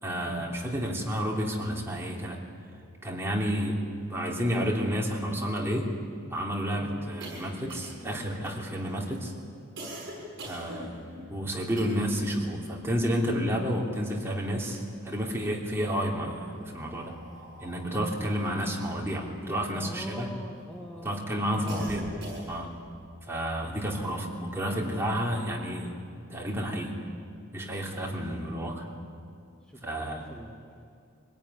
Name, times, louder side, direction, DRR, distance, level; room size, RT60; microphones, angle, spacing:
voice 1, 0.0-2.4 3.0-5.9 6.3-9.3 10.4-11.0 11.3-17.1 17.6-20.3 21.0-22.0 22.5-22.7 23.3-25.9 26.3-26.9 27.5-28.9 29.8-30.2, equal, 10° right, -2 dB, 3.1 m, -30 dB
sound 1, 6.1-12.3 12.6-14.1 14.5-15.4 16.2-20.7 21.1-22.8, equal, 60° right, 7.2 m, -45 dB
voice 2, 17.9-18.3 19.7-21.9 29.6-30.8, equal, 5° left, -1 dB, 1.6 m, -43 dB
24.0 x 18.0 x 9.7 m, 2.4 s
head